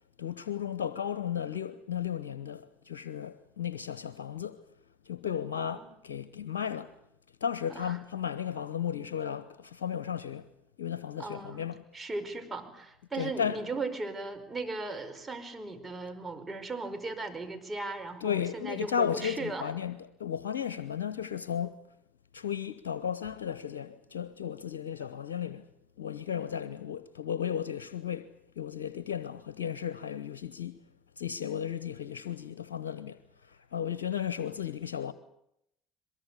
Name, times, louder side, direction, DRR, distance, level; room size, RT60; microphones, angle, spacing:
voice 1, 0.2-4.6 5.0-7.0 7.4-10.5 10.8-11.8 13.1-13.6 18.2-21.8 22.3-25.6 26.0-28.3 28.6-30.8 31.2-35.1, left 8 dB, 85° left, 0.9 m, -34 dB
voice 2, 5.5-5.9 7.7-7.9 11.2-11.7 11.9-19.7, right 3 dB, 20° right, 5.1 m, -37 dB
23.0 x 21.5 x 8.4 m
hypercardioid pair, 70°, 0 cm